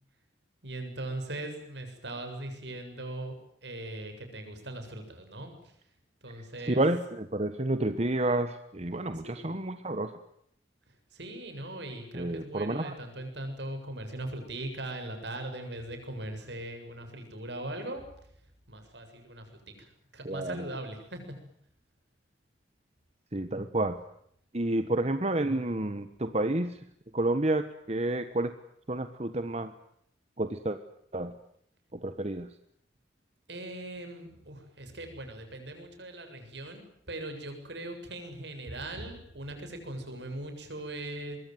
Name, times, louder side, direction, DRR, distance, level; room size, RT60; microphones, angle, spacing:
voice 1, 0.6-3.3 3.6-5.7 6.2-6.8 9.2-9.6 11.1-18.0 18.7-21.2 33.5-36.8 37.1-41.4, right 1 dB, 70° right, 6 dB, 7.4 m, -40 dB
voice 2, 6.7-10.1 12.1-12.9 20.2-20.6 23.3-24.0 24.5-26.7 27.1-28.5 28.9-29.7 30.4-30.8 31.1-31.3 32.0-32.5, right 2 dB, 35° right, 10 dB, 1.3 m, -29 dB
24.5 x 22.5 x 9.4 m, 0.71 s
head